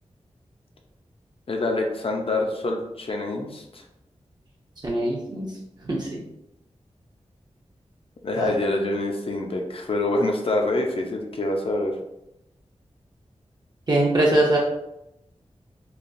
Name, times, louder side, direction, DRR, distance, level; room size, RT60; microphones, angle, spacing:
voice 1, 1.5-3.8 8.2-11.9, left 2 dB, 55° left, 2 dB, 0.5 m, -26 dB
voice 2, 4.8-5.5 5.8-6.2 8.4-8.5 13.9-14.6, right 1 dB, 35° right, -4 dB, 0.5 m, -22 dB
3.2 x 2.3 x 2.5 m, 0.86 s
wide cardioid pair, 100°, 12 cm